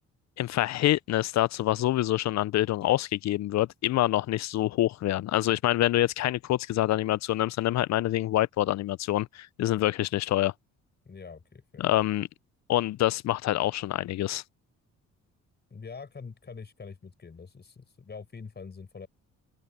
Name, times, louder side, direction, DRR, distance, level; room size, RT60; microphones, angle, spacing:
voice 1, 0.4-10.5 11.8-12.3 12.7-14.4, left 14 dB, 65° left, 0.6 m, -26 dB
voice 2, 11.1-11.9 15.7-19.1, left 5 dB, 35° left, 5.7 m, -44 dB
open air
cardioid pair, 90°, 30 cm